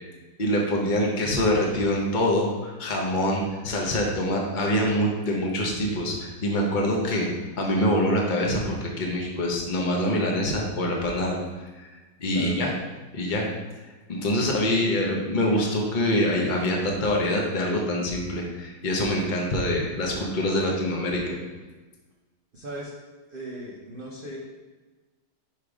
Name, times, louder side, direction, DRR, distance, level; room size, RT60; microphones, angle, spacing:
voice 1, 0.4-7.3 7.6-11.9 12.2-12.7 13.1-13.5 14.1-21.4, left 1 dB, 75° left, -1 dB, 0.4 m, -25 dB
voice 2, 14.4-14.8 22.5-22.9 23.3-24.4, right 1 dB, 80° right, -5 dB, 0.4 m, -38 dB
5.1 x 4.4 x 4.8 m, 1.3 s
omnidirectional pair, 2.3 m